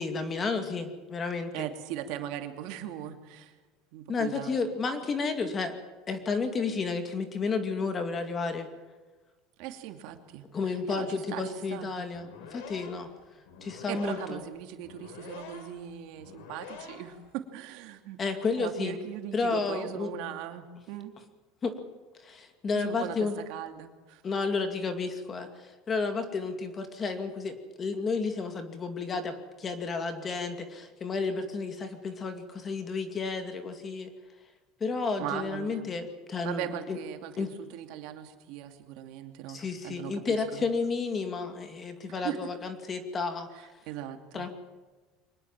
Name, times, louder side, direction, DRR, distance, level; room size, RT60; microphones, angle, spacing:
voice 1, 0.0-1.7 4.1-5.8 6.1-8.7 10.5-13.1 13.6-14.4 18.2-18.9 19.3-20.1 21.6-21.8 22.2-23.4 24.2-34.1 34.8-37.0 37.4-37.5 39.5-43.5 44.3-44.5, left 4 dB, 20° left, 7 dB, 2.4 m, -32 dB
voice 2, 1.5-3.5 3.9-4.5 9.6-12.0 13.9-18.2 18.5-21.1 22.7-23.2 23.5-24.2 35.2-35.9 36.4-40.7 42.1-42.4 43.5-44.5, right 11 dB, 60° right, 6 dB, 2.6 m, -39 dB
sound 1, 12.1-17.3, left 6 dB, 85° left, 4.6 m, -47 dB
24.0 x 20.5 x 7.4 m, 1.3 s
cardioid pair, 160°, 0 cm